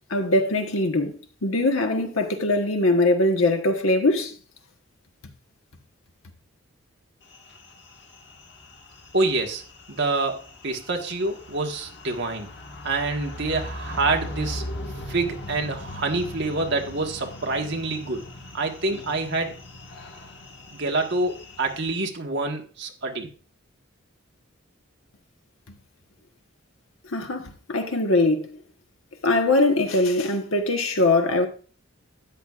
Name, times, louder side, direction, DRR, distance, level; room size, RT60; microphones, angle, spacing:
voice 1, 0.1-4.4 27.1-28.6 29.2-31.5, left 2 dB, 70° left, 1.3 m, -22 dB
sound 1, 7.3-21.9, left 1 dB, 50° left, 1.5 m, -40 dB
voice 2, 9.1-9.6 9.9-12.5 12.8-14.7 15.1-18.2 18.5-19.5 20.7-23.3, right 3 dB, 55° right, 1.4 m, -26 dB
13.0 x 9.3 x 2.5 m
head